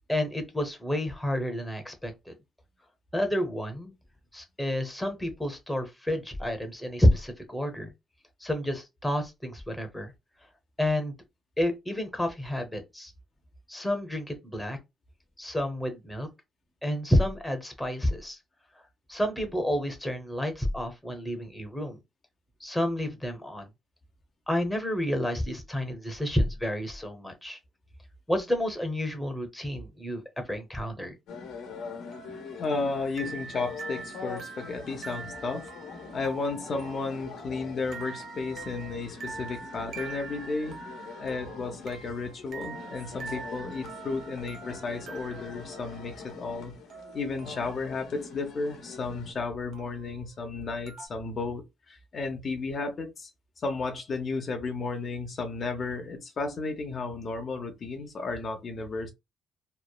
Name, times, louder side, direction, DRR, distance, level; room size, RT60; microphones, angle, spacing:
voice 1, 0.1-2.3 3.1-3.9 4.3-7.9 8.4-10.1 10.8-11.1 11.6-13.1 13.7-14.8 15.4-16.3 16.8-18.4 19.1-22.0 22.6-23.7 24.5-27.6 28.3-31.2, left 1 dB, 5° left, 0.8 m, -29 dB
sound 1, 31.3-49.3, left 5 dB, 90° left, 0.9 m, -44 dB
sound 2, 31.6-48.0 49.7-50.2 50.9-51.1, right 5 dB, 65° right, 0.7 m, -45 dB
voice 2, 32.6-35.7 36.1-40.8 41.2-46.7 47.1-53.3 53.6-59.1, left 3 dB, 50° left, 0.6 m, -33 dB
3.0 x 2.0 x 2.3 m
cardioid pair, 90°, 0 cm